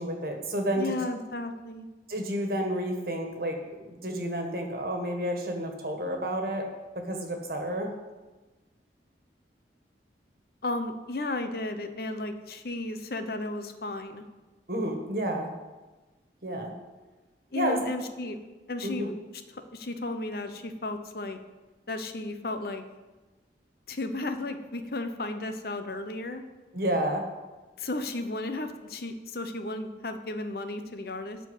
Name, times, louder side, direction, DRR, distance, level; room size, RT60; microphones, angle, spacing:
voice 1, 0.0-1.0 2.1-6.7 7.1-7.9 14.7-15.5 16.4-16.7 17.5-17.8 18.8-19.1 26.7-27.2, right 1 dB, 55° right, 3 dB, 1.7 m, -30 dB
voice 2, 0.8-1.9 10.6-14.2 17.5-18.4 18.7-19.1 19.7-21.4 21.9-22.8 23.9-26.4 27.8-31.4, left 2 dB, 55° left, 8 dB, 0.8 m, -34 dB
12.5 x 4.6 x 8.0 m, 1.2 s
head